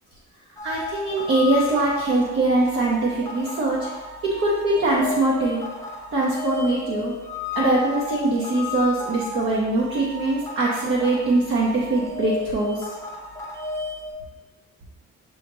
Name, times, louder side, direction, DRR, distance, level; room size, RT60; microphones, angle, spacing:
sound 1, 0.6-14.1, left 3 dB, 10° left, 0.6 m, -34 dB
voice 1, 0.6-3.9 4.2-5.6 6.1-7.1 7.6-12.9, right 2 dB, 45° right, -5 dB, 0.7 m, -22 dB
6.3 x 2.7 x 3.0 m, 1.2 s
wide cardioid pair, 165°, 31 cm